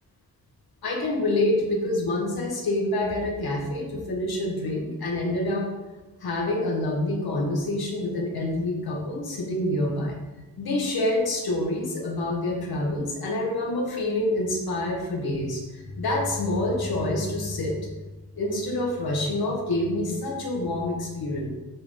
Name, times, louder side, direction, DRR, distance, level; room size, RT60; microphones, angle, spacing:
voice 1, 0.8-5.7 6.2-10.1 10.6-17.7 18.4-21.5, left 1 dB, 85° left, -2 dB, 1.6 m, -27 dB
7.7 x 5.7 x 3.8 m, 1.1 s
wide cardioid pair, 120°, 36 cm